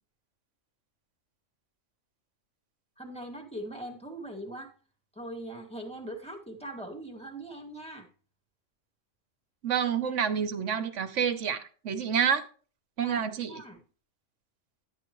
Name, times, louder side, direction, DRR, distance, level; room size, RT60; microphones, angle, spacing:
voice 1, 3.0-4.7 5.2-8.1 13.0-13.8, right 1 dB, 5° left, 2.0 m, -41 dB
voice 2, 9.6-12.5 13.0-13.6, right 7 dB, 65° right, 1.2 m, -28 dB
11.5 x 9.4 x 3.1 m
omnidirectional pair, 1.4 m